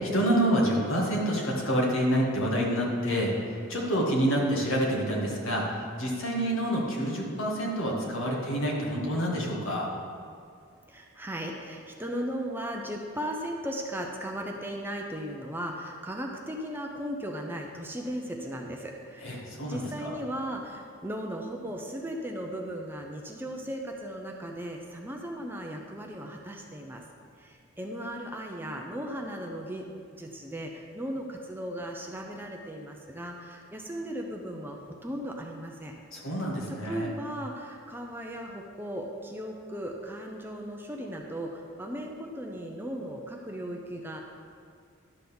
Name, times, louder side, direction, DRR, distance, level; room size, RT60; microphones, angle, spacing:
voice 1, 0.0-3.3 3.7-5.7 6.0-9.9 19.2-20.1 36.1-37.1, equal, 70° left, -2 dB, 1.9 m, -27 dB
voice 2, 10.9-27.0 27.4-29.9 30.2-35.9 36.7-44.2, equal, 10° right, 1 dB, 0.6 m, -37 dB
11.5 x 4.0 x 6.9 m, 2.2 s
head